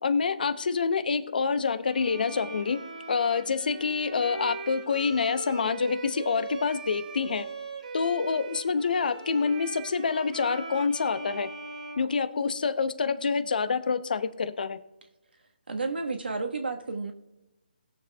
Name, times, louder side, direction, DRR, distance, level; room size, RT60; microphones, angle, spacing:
voice 1, 0.0-2.8 3.1-7.5 7.9-11.5 12.0-14.8, left 5 dB, 55° left, 12 dB, 0.8 m, -27 dB
Bowed string instrument, 1.9-12.9, right 3 dB, 50° right, 2.3 m, -40 dB
voice 2, 15.7-17.1, right 3 dB, 75° right, 3 dB, 1.5 m, -31 dB
20.5 x 7.1 x 2.4 m, 1.0 s
figure-of-eight pair, 160°, 6 cm